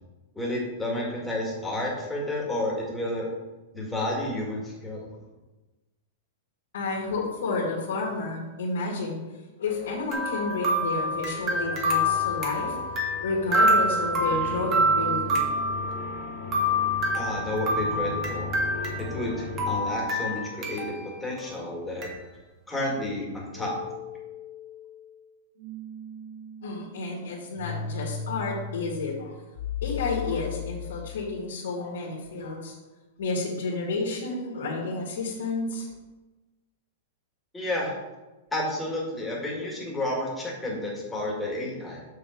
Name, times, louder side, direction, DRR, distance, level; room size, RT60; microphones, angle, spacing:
voice 1, 0.4-3.3 3.7-5.1 17.1-18.5 19.1-22.1 22.7-23.7 37.5-37.9 38.5-42.0, left 1 dB, 5° left, -3 dB, 2.1 m, -31 dB
voice 2, 6.7-9.2 9.6-12.9 13.2-15.5 26.6-29.4 29.8-32.7 33.2-35.9, left 3 dB, 85° left, -3 dB, 1.9 m, -31 dB
sound 1, 9.7-19.8, left 4 dB, 30° left, 1.9 m, -39 dB
sound 2, 10.1-19.3 19.6-21.0 21.4-21.5 22.0-22.1, equal, 30° right, 1.6 m, -26 dB
sound 3, 23.6-31.4, left 6 dB, 70° left, 2.3 m, -37 dB
6.7 x 6.3 x 4.6 m, 1.1 s
supercardioid pair, 155°, 0 cm